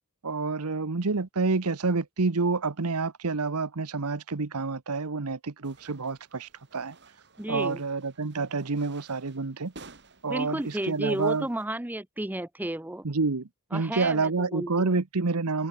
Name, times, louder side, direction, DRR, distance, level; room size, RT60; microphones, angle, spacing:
voice 1, 0.2-6.9 7.5-9.7 10.2-11.5 13.0-15.7, right 4 dB, 85° right, 1.0 m, -28 dB
sound 1, 5.6-11.7, right 3 dB, 50° right, 5.5 m, -54 dB
voice 2, 7.4-7.8 10.3-13.1 13.7-15.0, right 1 dB, 10° right, 0.6 m, -32 dB
head